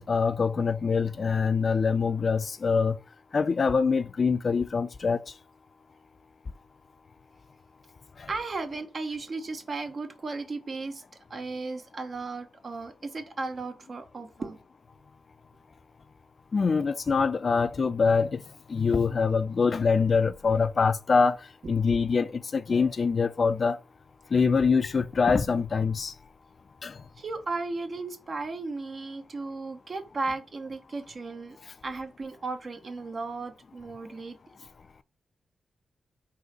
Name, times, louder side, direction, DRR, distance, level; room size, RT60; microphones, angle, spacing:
voice 1, 0.0-3.0 3.3-5.2 16.5-18.4 18.7-21.4 21.7-23.8 24.3-26.1 26.8-26.9, left 5 dB, 50° left, 0.4 m, -24 dB
voice 2, 8.3-11.0 11.3-14.6 21.6-21.7 27.2-31.6 31.8-34.4, right 3 dB, 50° right, 0.9 m, -35 dB
4.0 x 2.7 x 4.9 m
cardioid pair, 65°, 0 cm